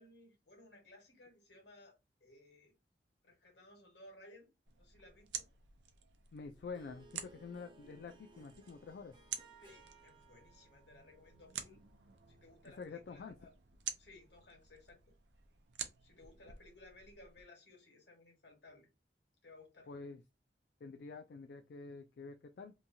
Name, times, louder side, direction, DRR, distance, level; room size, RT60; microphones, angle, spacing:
voice 1, 0.0-2.7 3.2-4.5 4.8-5.5 9.6-11.9 12.3-13.5 14.0-15.0 16.0-18.9 19.4-19.9, left 2 dB, 80° left, 1.4 m, -60 dB
sound 1, 4.7-17.4, right 8 dB, 85° right, 0.5 m, -50 dB
voice 2, 6.3-9.2 12.8-13.3 19.9-20.2 20.8-22.7, left 4 dB, 65° left, 0.3 m, -48 dB
Harp, 6.4-12.2, right 3 dB, 30° right, 0.6 m, -63 dB
2.9 x 2.3 x 2.6 m
head